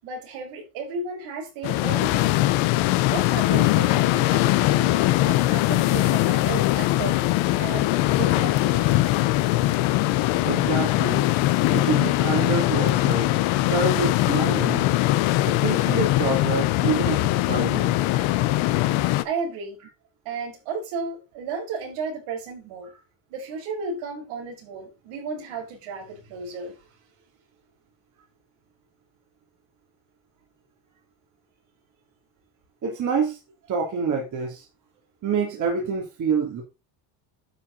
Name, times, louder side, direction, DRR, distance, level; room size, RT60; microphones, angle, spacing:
voice 1, 0.0-2.5 3.1-9.0 19.2-19.8 20.2-22.9 23.3-26.8, right 4 dB, 75° right, 6.1 m, -34 dB
sound 1, 1.6-19.2, left 17 dB, 70° left, 1.1 m, -21 dB
voice 2, 10.4-11.2 11.7-13.3 13.6-14.9 15.4-18.3 32.8-33.4 33.7-34.6 35.2-36.6, right 5 dB, 35° right, 3.1 m, -27 dB
11.0 x 6.1 x 4.1 m
cardioid pair, 145°, 49 cm